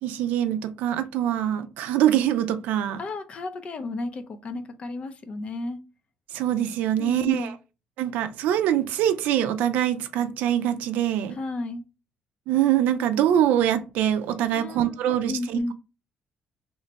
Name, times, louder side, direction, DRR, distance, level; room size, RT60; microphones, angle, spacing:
voice 1, 0.0-3.0 6.3-7.5 8.0-11.4 12.5-15.7, right 11 dB, 85° right, 10 dB, 0.4 m, -24 dB
voice 2, 3.0-5.8 7.0-7.5 11.3-11.8 14.5-15.7, left 2 dB, 45° left, 9 dB, 0.5 m, -33 dB
3.1 x 2.1 x 3.9 m, 0.31 s
cardioid pair, 105°, 3 cm